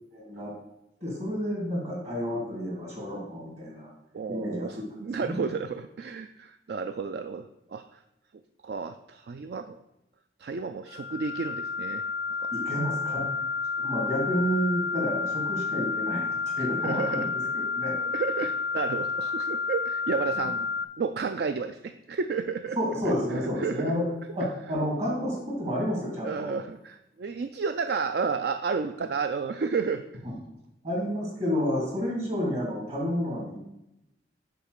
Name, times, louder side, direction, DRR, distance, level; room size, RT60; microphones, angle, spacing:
voice 1, 0.1-0.5 1.0-3.9 4.3-4.8 5.2-5.4 12.5-16.3 16.6-17.4 17.7-17.9 20.4-20.5 22.8-24.0 24.3-26.5 30.2-30.4 30.8-33.6, equal, 40° right, -2 dB, 2.7 m, -30 dB
voice 2, 4.1-8.0 8.6-9.8 10.4-12.0 12.4-12.8 16.6-17.3 18.1-20.7 21.0-22.8 23.1-23.9 26.2-30.0, right 5 dB, 60° right, 9 dB, 0.3 m, -32 dB
sound 1, 10.9-20.8, left 4 dB, 55° left, 0.4 m, -30 dB
6.8 x 5.1 x 6.5 m, 0.91 s
head